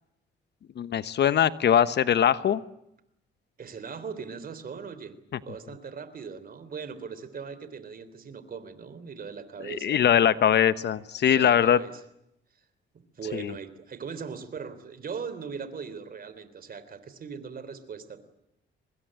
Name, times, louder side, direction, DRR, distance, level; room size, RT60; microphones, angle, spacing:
voice 1, 0.8-2.6 9.7-11.8 13.3-13.5, left 9 dB, 60° left, 15 dB, 1.1 m, -22 dB
voice 2, 3.6-5.2 5.4-10.6 11.3-12.0 12.5-12.7 12.9-18.2, right 6 dB, 45° right, 13 dB, 3.6 m, -40 dB
25.0 x 21.0 x 8.9 m, 0.82 s
cardioid pair, 90°, 20 cm